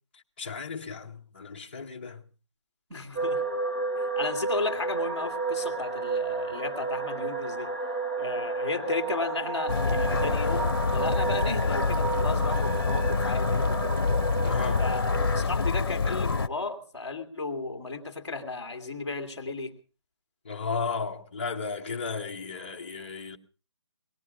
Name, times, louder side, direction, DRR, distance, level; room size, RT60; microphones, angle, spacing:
voice 1, 0.4-2.2 14.4-14.9 20.4-23.4, left 5 dB, 20° left, 0.8 m, -34 dB
voice 2, 2.9-3.5 4.0-7.7 8.2-14.0 14.8-19.7, left 3 dB, 5° right, 1.3 m, -34 dB
sound 1, 3.2-15.4, right 4 dB, 20° right, 0.9 m, -32 dB
sound 2, 9.7-16.5, left 4 dB, 50° left, 0.8 m, -26 dB
18.5 x 14.0 x 4.8 m
hypercardioid pair, 180°, 15 cm